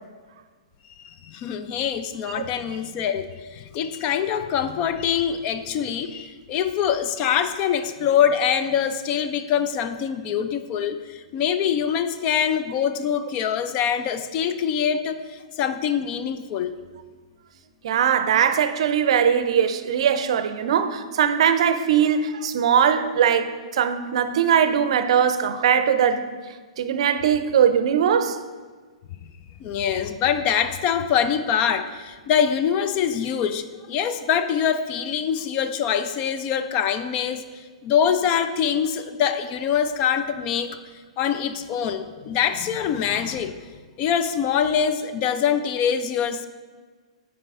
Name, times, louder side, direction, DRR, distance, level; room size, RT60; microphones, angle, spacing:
voice 1, 1.0-16.8 29.2-29.3 29.6-40.8 41.2-43.5 44.0-46.5, left 8 dB, 35° left, 0.4 m, -24 dB
voice 2, 17.8-26.3 26.8-28.4, right 8 dB, 60° right, 0.5 m, -20 dB
9.2 x 4.7 x 3.7 m
hypercardioid pair, 120°, 3 cm